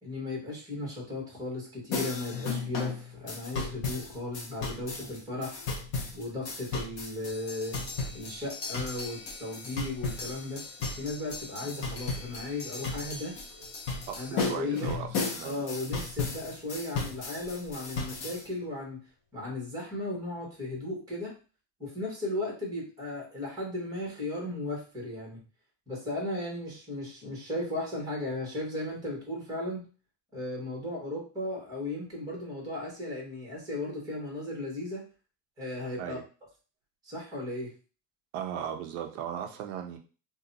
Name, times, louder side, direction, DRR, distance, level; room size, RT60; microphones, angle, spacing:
voice 1, 0.0-5.6 6.1-7.8 8.1-10.7 10.9-13.4 14.1-14.9 15.4-19.0 19.3-21.3 21.8-25.4 25.9-29.8 30.3-35.0 35.6-36.2 37.0-37.7, left 2 dB, 10° right, -2 dB, 1.2 m, -36 dB
sound 1, 1.9-18.4, left 4 dB, 30° left, 0.5 m, -35 dB
voice 2, 14.1-15.6 36.0-36.2 38.3-40.0, right 9 dB, 45° right, 5 dB, 0.5 m, -37 dB
2.7 x 2.3 x 3.9 m, 0.35 s
cardioid pair, 175°, 48 cm